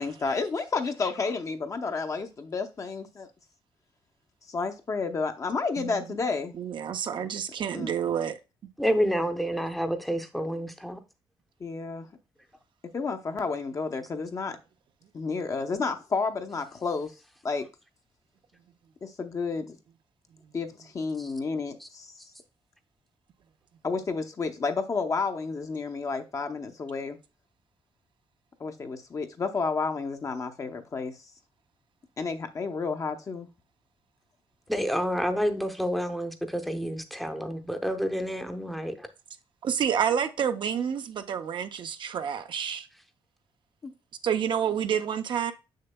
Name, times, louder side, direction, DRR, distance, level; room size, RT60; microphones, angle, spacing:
voice 1, 0.0-3.3 4.5-6.5 7.7-7.9 11.6-12.1 12.9-14.6 15.1-17.1 17.4-17.7 19.0-19.8 20.5-22.1 23.8-27.2 28.6-31.2 32.2-33.5 43.8-43.9, left 4 dB, 35° left, 0.7 m, -31 dB
voice 2, 6.6-8.4 39.6-42.9 44.2-45.5, right 8 dB, 55° right, 0.5 m, -29 dB
voice 3, 8.8-11.0 34.7-39.1, equal, ahead, 0.7 m, -29 dB
6.8 x 6.5 x 2.2 m
cardioid pair, 125°, 10 cm